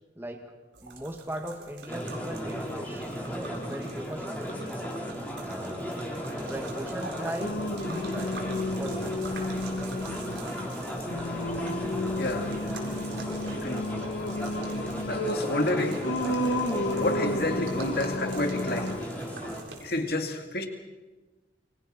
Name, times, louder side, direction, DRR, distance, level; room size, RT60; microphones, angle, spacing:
voice 1, 0.2-0.5 0.8-4.7 5.4-8.5 8.7-9.3 13.8-14.1 17.5-17.7, right 1 dB, 15° right, 3 dB, 1.9 m, -39 dB
sound 1, 0.7-20.0, right 4 dB, 85° right, 4.2 m, -47 dB
sound 2, 1.9-19.6, equal, 10° left, 4.1 m, -36 dB
Singing, 7.4-19.0, left 1 dB, 80° left, 1.8 m, -32 dB
voice 2, 12.2-12.5 13.6-13.9 15.1-16.1 17.0-18.9 19.8-20.7, left 1 dB, 60° left, 4 dB, 2.3 m, -29 dB
28.0 x 24.0 x 4.4 m, 1.2 s
head